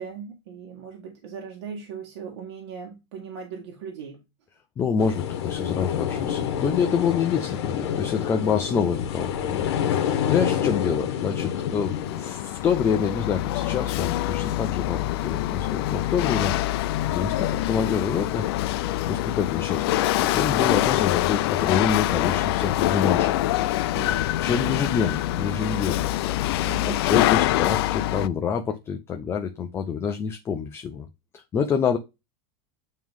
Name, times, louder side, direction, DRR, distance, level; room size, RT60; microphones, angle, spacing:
voice 1, 0.0-4.2 23.9-24.3 26.7-27.0, right 6 dB, 85° right, 1.9 m, -38 dB
voice 2, 4.8-23.3 24.4-26.1 26.9-31.1 31.3-32.0, left 6 dB, 20° left, 0.5 m, -27 dB
sound 1, 5.0-12.3, left 9 dB, 85° left, 1.1 m, -27 dB
Chatter / Hiss / Rattle, 11.4-28.3, left 14 dB, 65° left, 0.4 m, -25 dB
9.1 x 3.1 x 3.6 m
supercardioid pair, 165°, 14 cm